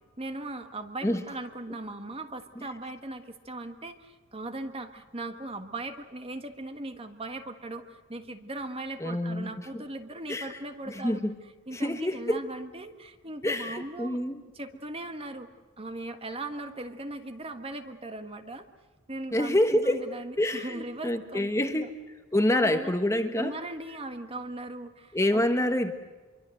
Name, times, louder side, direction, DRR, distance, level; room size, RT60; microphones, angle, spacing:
voice 1, 0.2-11.2 11.7-14.2 14.6-15.5 15.8-18.7 19.1-21.9 22.5-22.9 23.3-25.7, right 2 dB, 25° right, 8 dB, 1.6 m, -39 dB
voice 2, 9.0-9.8 10.3-10.6 10.9-11.3 11.7-12.5 13.4-14.4 19.3-20.1 20.4-21.9 22.3-23.5 25.1-25.9, left 1 dB, 15° left, 7 dB, 1.3 m, -27 dB
26.0 x 24.0 x 7.9 m, 1.3 s
head